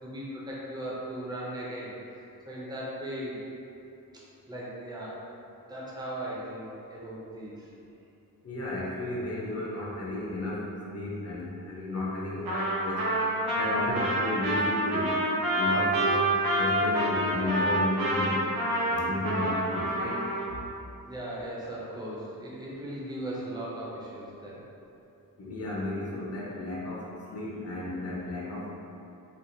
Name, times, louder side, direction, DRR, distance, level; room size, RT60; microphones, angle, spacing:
voice 1, 0.0-1.9 2.5-3.4 4.5-5.2 5.7-6.6 6.9-7.7 21.0-24.6, right 1 dB, 10° right, -6 dB, 0.5 m, -37 dB
voice 2, 8.4-10.6 10.9-13.1 13.6-15.2 15.5-18.5 18.9-20.2 25.4-28.7, left 2 dB, 45° left, -5 dB, 0.5 m, -33 dB
Trumpet, 12.4-20.5, right 1 dB, 85° right, 0.9 m, -27 dB
4.2 x 2.3 x 2.6 m, 2.7 s
wide cardioid pair, 175°, 35 cm